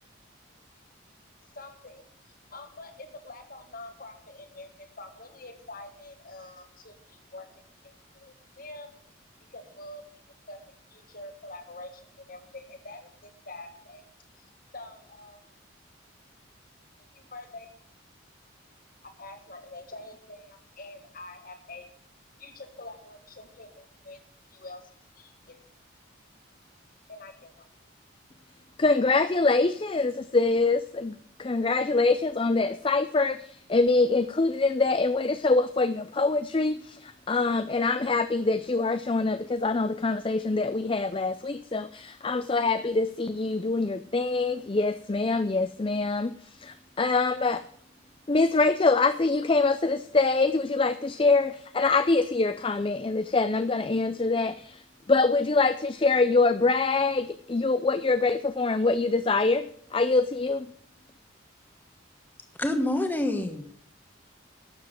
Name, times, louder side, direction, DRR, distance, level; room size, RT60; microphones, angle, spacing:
voice 1, 1.5-8.9 9.5-10.2 10.5-14.0 14.4-15.4 17.0-17.7 19.0-21.9 22.4-24.2 24.5-25.6 27.1-27.7, left 2 dB, 45° left, 6 dB, 1.9 m, -46 dB
voice 2, 28.8-47.6 48.3-60.7, left 3 dB, 25° left, 11 dB, 0.4 m, -25 dB
voice 3, 62.6-63.7, left 1 dB, 10° left, 6 dB, 1.2 m, -27 dB
12.0 x 7.2 x 8.9 m, 0.62 s
head